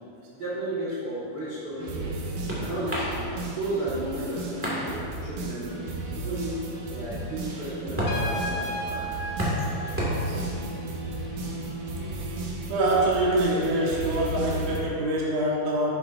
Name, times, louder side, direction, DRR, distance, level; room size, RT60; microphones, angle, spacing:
voice 1, 0.3-2.1 2.6-6.6 6.9-9.2, right 1 dB, 35° right, -11 dB, 2.0 m, -33 dB
sound 1, 1.4-12.5, equal, 5° right, 1.4 m, -35 dB
sound 2, 1.8-14.8, right 2 dB, 85° right, 2.7 m, -35 dB
Trumpet, 8.1-10.7, equal, 65° left, 2.5 m, -34 dB
voice 2, 12.7-15.9, right 1 dB, 60° right, -5 dB, 2.4 m, -25 dB
10.5 x 10.0 x 2.7 m, 2.8 s
omnidirectional pair, 3.6 m